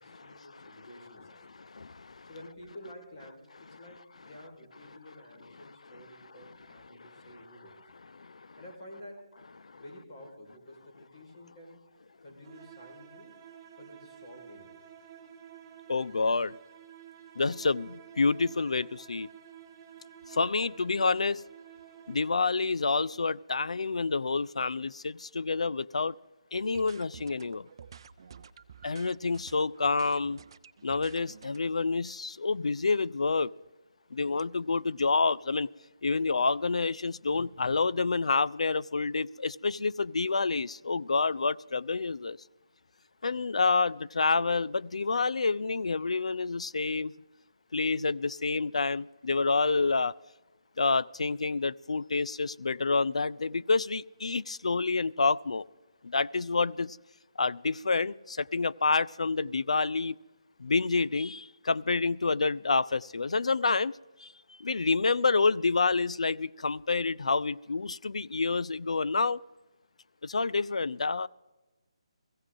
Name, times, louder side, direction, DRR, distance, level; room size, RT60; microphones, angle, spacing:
voice 1, 0.0-1.5 2.3-7.8 8.6-9.3 9.7-11.8 12.2-13.4 13.8-14.8, left 1 dB, 45° left, -1 dB, 4.9 m, -50 dB
voice 2, 1.7-2.3 8.2-8.4 9.7-9.8 15.9-16.6 17.4-19.3 20.3-21.4 22.1-26.1 26.5-27.7 28.8-30.4 30.8-33.5 34.1-35.7 36.0-42.4 43.2-47.1 47.7-50.1 50.8-55.7 56.0-57.0 57.4-60.2 60.6-63.9 64.2-64.3 64.6-69.4 70.2-71.3, left 4 dB, 80° left, 18 dB, 0.4 m, -28 dB
sound 1, 12.4-22.7, right 10 dB, 10° right, 1.8 m, -51 dB
sound 2, 26.5-31.6, right 7 dB, 45° right, 0.5 m, -51 dB
16.5 x 16.0 x 3.8 m, 1.2 s
hypercardioid pair, 165°, 3 cm